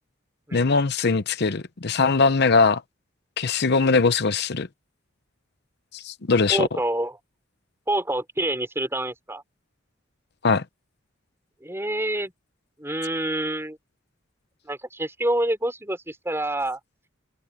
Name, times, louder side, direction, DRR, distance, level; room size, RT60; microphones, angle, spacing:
voice 1, 0.5-2.8 3.4-4.7 5.9-6.7 10.4-10.6, left 4 dB, 55° left, 0.8 m, -21 dB
voice 2, 6.5-7.2 7.9-9.4 11.6-12.3 12.8-13.8 14.7-16.8, right 1 dB, 15° right, 4.8 m, -27 dB
open air
head